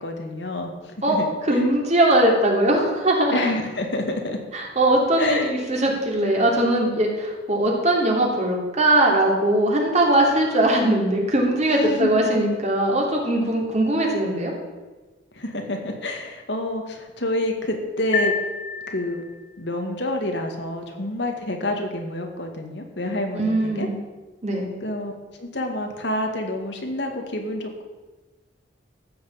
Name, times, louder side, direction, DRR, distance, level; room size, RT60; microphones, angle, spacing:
voice 1, 0.0-1.6 3.3-4.4 5.2-5.5 11.8-12.2 15.4-18.3 18.9-19.2 19.6-23.9 24.8-25.1 25.4-27.8, left 1 dB, 70° left, 3 dB, 2.1 m, -28 dB
voice 2, 1.0-3.5 4.5-14.5 23.3-24.0 24.4-24.7, right 1 dB, 40° right, -1 dB, 3.2 m, -20 dB
sound 1, 18.1-19.6, left 4 dB, 45° left, 1.7 m, -28 dB
14.5 x 6.6 x 8.6 m, 1.2 s
head